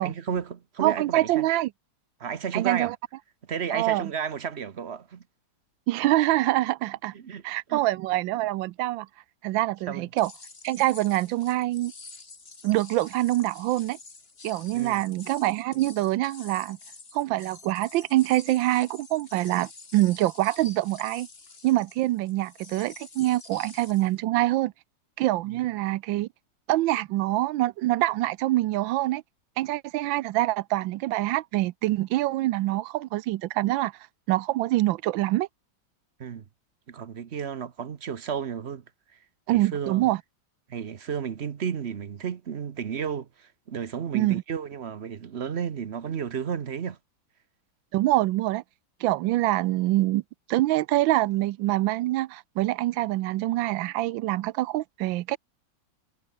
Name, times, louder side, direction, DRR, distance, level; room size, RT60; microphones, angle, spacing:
voice 1, 0.0-1.4 2.2-2.9 3.5-5.2 7.1-7.4 7.7-7.8 9.9-10.1 14.7-15.0 25.5-25.6 36.2-36.4 36.9-38.8 39.5-40.1 40.7-47.0, right 7 dB, 45° right, 1.0 m, -32 dB
voice 2, 0.8-1.7 2.5-3.0 3.7-4.1 5.9-7.1 7.4-9.1 9.4-10.3 10.6-11.9 12.6-14.0 14.4-16.8 17.1-21.3 21.6-24.7 25.2-26.3 26.7-29.2 29.6-33.9 34.3-35.5 39.5-40.2 44.1-44.4 47.9-48.6 49.0-50.2 50.5-55.4, right 16 dB, 85° right, 1.3 m, -25 dB
sound 1, 10.2-24.1, left 4 dB, 30° left, 2.3 m, -48 dB
omnidirectional pair, 2.1 m